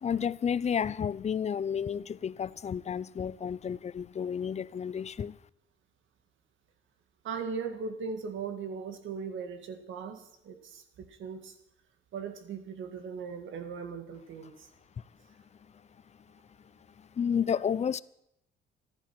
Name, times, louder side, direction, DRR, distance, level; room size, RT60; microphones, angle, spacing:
voice 1, 0.0-5.4 17.0-18.0, left 7 dB, 35° left, 0.5 m, -31 dB
voice 2, 7.2-11.6 12.1-14.7, right 5 dB, 80° right, 1.9 m, -39 dB
14.5 x 11.5 x 6.0 m
cardioid pair, 90°, 20 cm